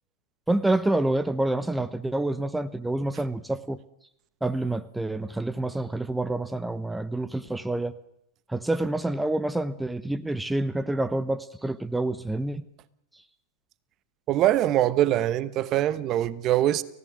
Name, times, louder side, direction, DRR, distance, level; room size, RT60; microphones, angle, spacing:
voice 1, 0.5-3.8 4.4-7.9 8.5-12.6, right 2 dB, 5° right, 1.0 m, -27 dB
voice 2, 14.3-16.8, right 13 dB, 35° right, 1.0 m, -23 dB
29.5 x 17.0 x 6.4 m
figure-of-eight pair, 95°, 0 cm